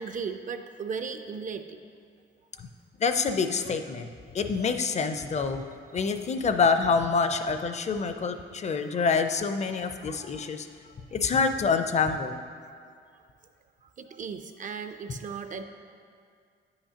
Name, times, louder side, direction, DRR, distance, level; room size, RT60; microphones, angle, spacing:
voice 1, 0.0-1.8 5.9-6.1 14.0-15.6, right 5 dB, 40° right, 7 dB, 0.4 m, -36 dB
voice 2, 3.0-4.1 4.3-5.6 5.9-10.7 11.1-12.4, left 5 dB, 35° left, 8 dB, 0.5 m, -26 dB
9.5 x 5.7 x 2.8 m, 2.3 s
cardioid pair, 90°, 20 cm